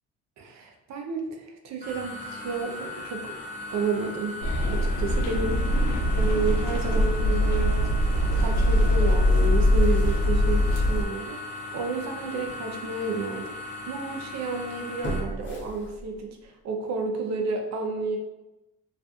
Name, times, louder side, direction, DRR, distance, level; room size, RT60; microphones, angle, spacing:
voice 1, 0.4-3.4 3.7-4.4 4.7-5.7 6.1-8.0 8.4-18.2, right 4 dB, 65° right, 3 dB, 0.6 m, -31 dB
sound 1, 1.8-15.2, left 2 dB, 25° right, 0.9 m, -38 dB
sound 2, 4.4-11.0, left 1 dB, 85° left, 0.5 m, -22 dB
sound 3, 11.7-11.9 12.4-12.5 15.0-16.5 16.8-16.9, right 1 dB, 40° left, 0.7 m, -35 dB
2.4 x 2.4 x 2.4 m, 0.98 s
cardioid pair, 90°, 30 cm